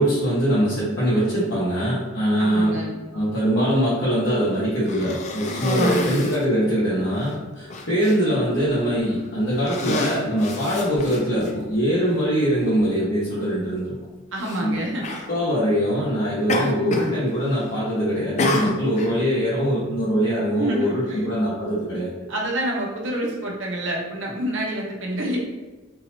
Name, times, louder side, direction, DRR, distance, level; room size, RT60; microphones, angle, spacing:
voice 1, 0.0-2.8 3.1-13.9 14.6-14.8 15.3-22.1, equal, 65° left, -10 dB, 1.0 m, -22 dB
voice 2, 2.4-3.0 5.8-6.3 14.3-15.1 20.6-21.3 22.3-25.4, right 1 dB, 70° right, -2 dB, 0.8 m, -28 dB
Cough, 4.8-6.5 7.2-7.3 7.7-8.2 8.9-9.2 9.6-11.5 12.5-12.6 14.4-14.6 15.0-15.3 16.5-17.2 17.4-17.9 18.4-19.1, left 2 dB, 35° left, 0.4 m, -28 dB
3.8 x 2.8 x 2.9 m, 1.2 s
head